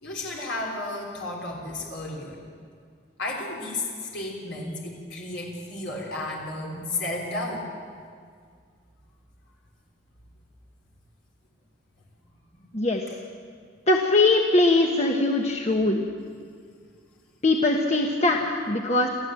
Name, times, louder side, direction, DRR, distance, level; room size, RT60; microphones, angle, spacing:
voice 1, 0.0-2.4 3.2-3.8 4.1-7.7, left 2 dB, 75° left, -2 dB, 3.6 m, -33 dB
voice 2, 13.9-16.1 17.4-19.1, left 2 dB, 35° left, 1 dB, 1.3 m, -21 dB
26.5 x 15.0 x 7.8 m, 2.1 s
head